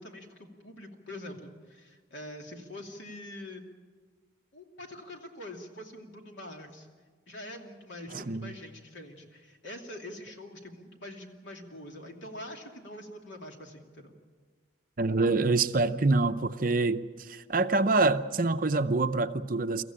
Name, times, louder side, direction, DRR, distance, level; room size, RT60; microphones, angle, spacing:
voice 1, 0.0-3.7 4.5-6.9 7.3-14.1, left 1 dB, 75° left, 2.7 m, -44 dB
voice 2, 8.1-8.5 15.0-19.8, right 3 dB, 45° right, 0.6 m, -26 dB
24.0 x 14.5 x 8.7 m
head